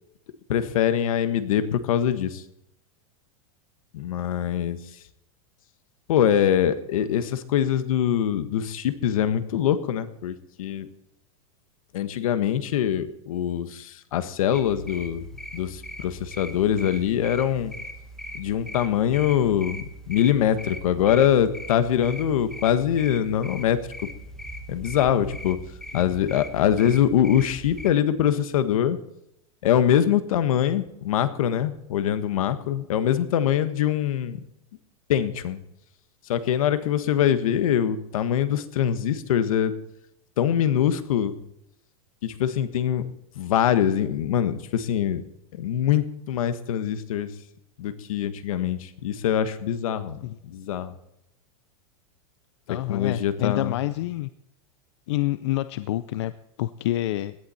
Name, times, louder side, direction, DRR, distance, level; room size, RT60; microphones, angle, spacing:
voice 1, 0.5-2.4 3.9-4.8 6.1-10.9 11.9-15.2 15.5-17.7 18.3-23.8 24.7-25.6 25.9-29.0 29.6-34.4 35.1-35.6 36.3-39.7 40.4-41.4 42.2-43.0 43.3-45.2 45.6-47.3 47.8-50.2 50.5-50.9 52.9-53.7, left 10 dB, 70° left, 11 dB, 1.4 m, -23 dB
sound 1, 14.5-27.9, equal, 5° left, 0.9 m, -40 dB
voice 2, 52.7-54.3 55.1-56.3 56.6-57.4, left 15 dB, 50° left, 13 dB, 0.5 m, -28 dB
17.5 x 11.0 x 4.4 m, 0.81 s
supercardioid pair, 180°, 18 cm